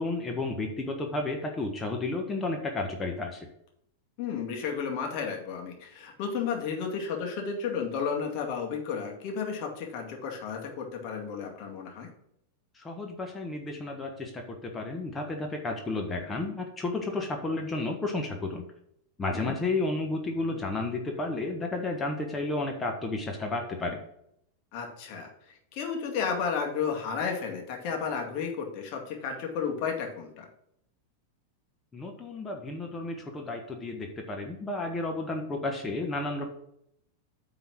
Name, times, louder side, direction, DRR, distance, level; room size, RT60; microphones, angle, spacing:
voice 1, 0.0-3.5 12.7-18.6 19.2-24.0 31.9-36.5, left 2 dB, 15° left, 2 dB, 1.3 m, -32 dB
voice 2, 4.2-12.1 19.3-19.5 24.7-30.5, left 6 dB, 40° left, 1 dB, 2.2 m, -33 dB
9.1 x 4.0 x 6.1 m, 0.73 s
figure-of-eight pair, 90°, 0 cm